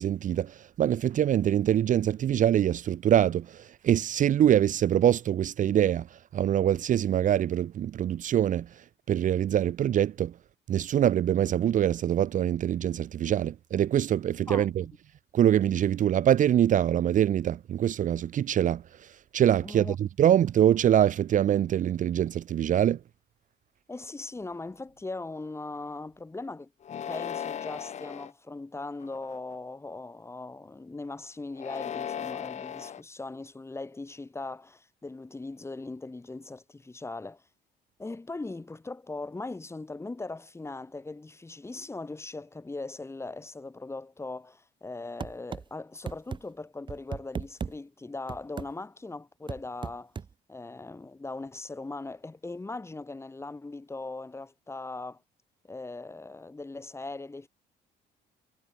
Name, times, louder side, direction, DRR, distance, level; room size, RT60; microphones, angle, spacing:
voice 1, 0.0-8.7 9.1-10.3 10.7-14.8 15.3-18.8 19.3-23.0, right 10 dB, 50° right, 0.9 m, -24 dB
voice 2, 19.6-19.9 23.9-26.7 27.1-37.4 38.0-50.1 50.5-55.2 55.7-57.5, left 3 dB, 15° left, 5.1 m, -39 dB
sound 1, 26.8-28.3 29.0-29.5 31.5-33.0, left 8 dB, 45° left, 1.2 m, -37 dB
sound 2, 45.2-45.6 46.1-46.4 46.9-47.7 48.3-48.7 49.5-50.3, right 6 dB, 30° right, 1.1 m, -35 dB
cardioid pair, 110°, 17 cm